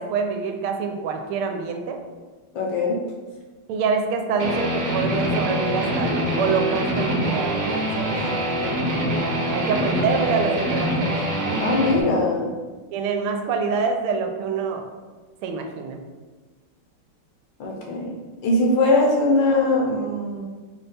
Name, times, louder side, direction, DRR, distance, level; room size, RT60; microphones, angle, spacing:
voice 1, 0.0-2.0 3.7-8.2 9.5-11.2 12.9-14.9 15.4-16.0, right 5 dB, 85° right, 5 dB, 1.5 m, -26 dB
voice 2, 2.5-3.0 11.6-12.5 17.6-18.1 18.4-20.4, left 2 dB, 70° left, -1 dB, 1.3 m, -21 dB
Guitar, 4.4-12.0, equal, 60° right, 0.9 m, -24 dB
5.1 x 2.2 x 4.0 m, 1.3 s
omnidirectional pair, 2.4 m